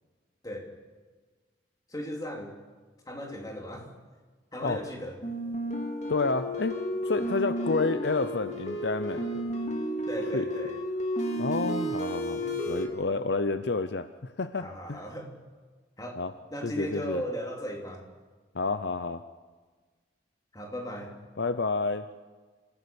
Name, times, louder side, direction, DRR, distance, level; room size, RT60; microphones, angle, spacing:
voice 1, 1.9-2.5 3.1-3.9 4.5-5.2 10.1-10.8 12.3-12.6 14.5-15.3 16.0-18.0 20.5-21.1, equal, 20° left, 1 dB, 3.1 m, -37 dB
sound 1, 5.2-12.9, equal, 35° left, 2.6 m, -32 dB
voice 2, 6.1-6.8 7.0-9.2 10.3-10.5 11.4-12.4 12.7-15.0 16.2-16.3 16.6-17.2 18.5-19.2 21.4-22.0, left 3 dB, 60° left, 11 dB, 0.7 m, -29 dB
27.5 x 15.5 x 7.1 m, 1.4 s
head